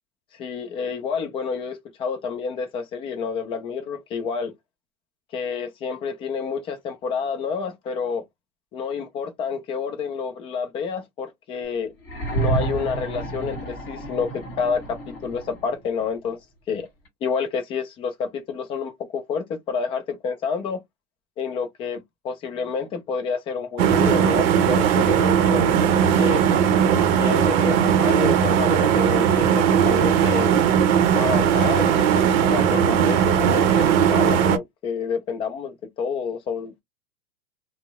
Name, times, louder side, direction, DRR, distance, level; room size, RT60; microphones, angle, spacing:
voice 1, 0.3-4.5 5.3-8.2 8.7-11.9 12.3-16.4 16.7-16.9 17.2-20.8 21.4-22.0 22.2-25.8 26.2-26.4 27.2-30.5 31.1-36.8, left 6 dB, 15° left, 0.3 m, -29 dB
sound 1, 12.0-15.8 17.0-17.1, right 3 dB, 30° left, 1.7 m, -30 dB
sound 2, 23.8-34.6, right 8 dB, 60° right, 0.7 m, -18 dB
2.7 x 2.1 x 3.4 m
hypercardioid pair, 120°, 43 cm